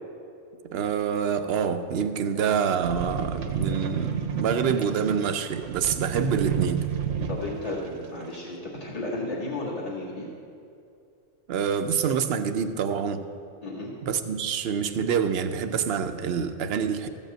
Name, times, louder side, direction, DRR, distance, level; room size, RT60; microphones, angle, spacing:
voice 1, 0.7-6.8 11.5-13.3 14.0-17.1, right 7 dB, 60° right, 9 dB, 0.8 m, -26 dB
sound 1, 2.8-7.7 8.3-8.4, right 8 dB, 75° right, 1.2 m, -30 dB
voice 2, 7.3-10.3 13.6-13.9, left 2 dB, 30° left, -7 dB, 1.8 m, -33 dB
14.0 x 5.3 x 7.5 m, 2.6 s
omnidirectional pair, 1.2 m